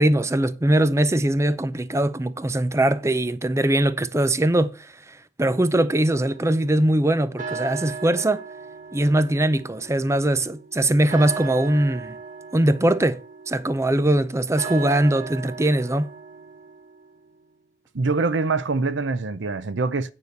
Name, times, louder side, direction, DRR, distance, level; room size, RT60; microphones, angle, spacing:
voice 1, 0.0-4.9 5.4-8.4 8.9-12.1 12.5-13.2 13.5-16.1, right 1 dB, 15° right, 0.5 m, -21 dB
sound 1, 6.1-17.3, right 5 dB, 45° right, 1.8 m, -38 dB
voice 2, 17.9-20.1, right 3 dB, 80° right, 0.7 m, -24 dB
9.4 x 5.0 x 6.6 m
head